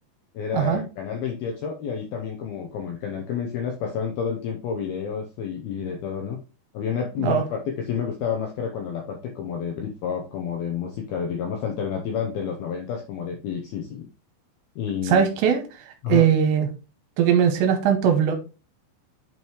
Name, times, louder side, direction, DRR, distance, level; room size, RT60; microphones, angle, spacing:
voice 1, 0.3-6.4 6.7-14.1 14.8-15.3 16.0-16.3, left 7 dB, 80° left, 2.2 m, -30 dB
voice 2, 15.0-15.6 16.1-16.7 17.2-18.3, right 8 dB, 75° right, 3.0 m, -19 dB
8.8 x 4.6 x 3.1 m
omnidirectional pair, 5.5 m